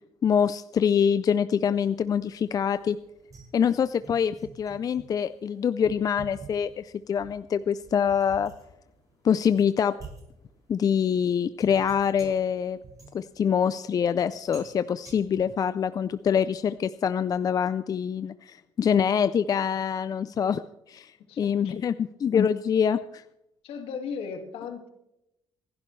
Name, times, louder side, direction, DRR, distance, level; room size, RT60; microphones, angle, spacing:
voice 1, 0.2-3.0 3.5-8.5 9.2-9.9 10.7-12.8 13.1-20.6 20.9-21.1 21.4-23.2, left 7 dB, 40° left, 13 dB, 0.4 m, -25 dB
sound 1, 1.6-16.8, right 4 dB, 35° right, 6.7 m, -51 dB
voice 2, 21.3-21.7 23.6-24.9, left 6 dB, 70° left, 6 dB, 2.0 m, -36 dB
27.5 x 11.5 x 3.2 m, 0.88 s
cardioid pair, 110°, 10 cm